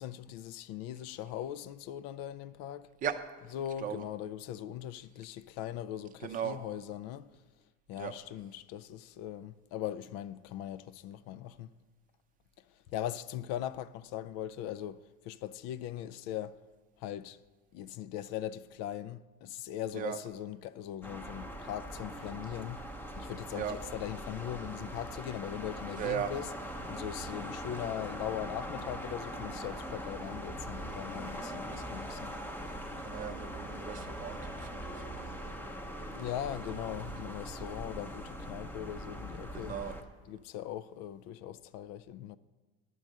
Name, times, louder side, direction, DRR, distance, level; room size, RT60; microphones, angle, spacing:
voice 1, 0.0-2.9 3.5-7.3 7.9-11.7 12.6-16.6 17.0-17.4 17.7-22.9 23.1-26.5 26.9-32.3 36.1-39.8 40.3-42.4, left 11 dB, 55° left, 0.4 m, -40 dB
voice 2, 6.2-6.6 8.0-8.1 19.9-20.2 23.5-23.7 26.0-26.3 31.7-31.8 32.7-32.8 33.0-35.5 39.5-39.9, right 8 dB, 25° right, 0.6 m, -37 dB
sound 1, 21.0-40.0, equal, 5° left, 0.7 m, -41 dB
11.0 x 6.5 x 7.4 m
cardioid pair, 175°, 30 cm